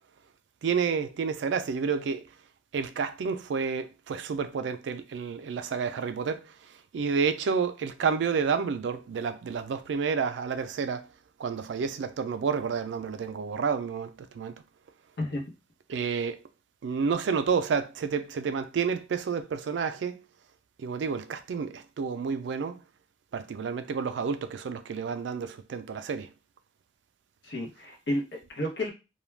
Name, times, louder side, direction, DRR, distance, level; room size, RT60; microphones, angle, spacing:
voice 1, 0.6-2.2 2.7-6.5 6.9-11.1 11.4-14.6 15.9-16.4 16.8-20.2 20.8-22.8 23.3-26.3, right 6 dB, 70° right, 0.3 m, -30 dB
voice 2, 27.4-28.9, left 1 dB, 65° left, 0.8 m, -31 dB
2.3 x 2.1 x 3.1 m
head